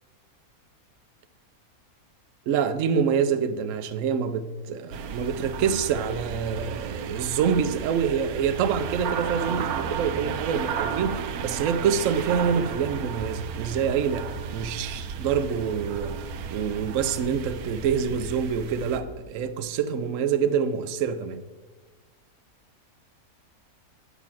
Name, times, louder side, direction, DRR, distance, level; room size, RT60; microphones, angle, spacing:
voice 1, 2.5-21.4, right 7 dB, 65° right, 1.0 m, -26 dB
sound 1, 4.9-19.0, right 6 dB, 90° right, 1.2 m, -34 dB
8.3 x 6.0 x 7.2 m
omnidirectional pair, 1.5 m